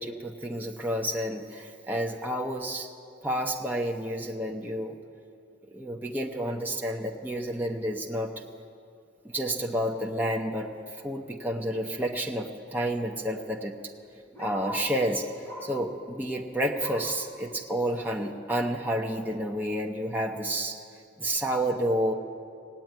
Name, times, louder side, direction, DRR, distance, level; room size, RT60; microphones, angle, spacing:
voice 1, 0.0-2.9 3.2-5.0 5.7-8.3 9.3-10.7 11.0-13.7 14.4-15.3 15.6-20.8 21.2-22.1, right 1 dB, 10° right, 0 dB, 0.8 m, -30 dB
Bark, 13.6-14.9 15.4-15.8 16.2-17.2 17.7-17.8 18.2-18.3 18.9-19.0, equal, 15° left, 4.4 m, -42 dB
18.0 x 8.4 x 9.2 m, 2.4 s
head